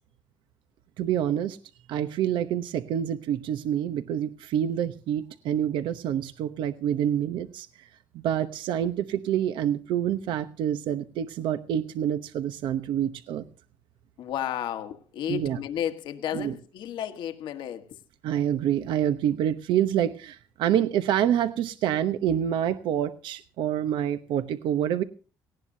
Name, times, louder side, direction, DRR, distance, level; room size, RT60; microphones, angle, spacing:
voice 1, 1.0-1.6 1.9-7.9 8.2-13.4 15.3-15.6 16.3-16.5 18.2-25.0, right 10 dB, 75° right, 0.9 m, -27 dB
voice 2, 14.2-18.0, left 10 dB, 75° left, 1.5 m, -33 dB
18.5 x 16.5 x 2.8 m
cardioid pair, 110°, 8 cm